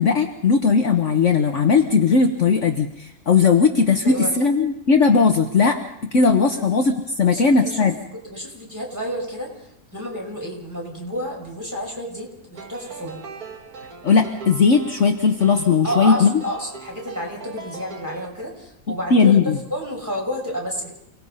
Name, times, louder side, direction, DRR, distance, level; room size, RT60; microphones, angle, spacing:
voice 1, 0.0-8.0 14.0-16.3 18.9-19.6, left 5 dB, 50° left, 4 dB, 1.5 m, -18 dB
voice 2, 7.3-7.9 8.2-13.2 15.8-20.9, equal, 10° right, -2 dB, 5.8 m, -30 dB
sound 1, 12.5-18.3, right 5 dB, 65° right, 2.3 m, -39 dB
29.0 x 18.5 x 5.6 m, 0.75 s
omnidirectional pair, 1.7 m